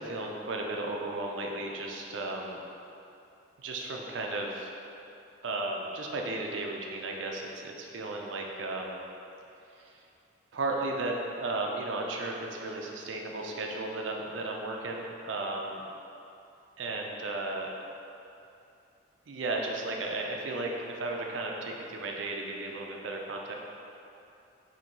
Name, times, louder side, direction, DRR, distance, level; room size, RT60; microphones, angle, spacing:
voice 1, 0.0-2.6 3.6-4.7 5.4-9.0 9.7-10.0 10.5-15.8 16.8-17.7 19.3-23.5, right 2 dB, 80° right, 0 dB, 0.5 m, -34 dB
3.9 x 2.8 x 4.4 m, 2.8 s
head